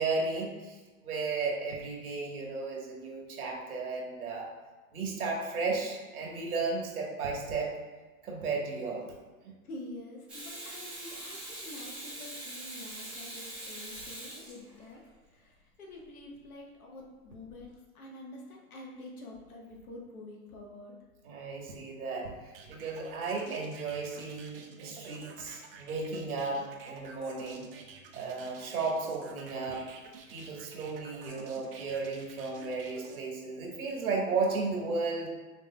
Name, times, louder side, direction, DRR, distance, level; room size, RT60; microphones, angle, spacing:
voice 1, 0.0-4.5 4.9-7.7 8.2-9.1 9.4-9.6 21.2-27.7 28.1-29.8 30.3-35.3, right 4 dB, 80° right, -1 dB, 1.5 m, -34 dB
voice 2, 9.6-21.0, left 2 dB, 80° left, -1 dB, 1.4 m, -47 dB
Water tap faucet / Sink (filling or washing), 10.3-15.1 17.5-17.6, right 1 dB, 5° right, 0.9 m, -43 dB
sound 1, 22.5-33.2, right 5 dB, 40° right, 0.6 m, -50 dB
5.8 x 3.3 x 2.3 m, 1.3 s
hypercardioid pair, 150°, 43 cm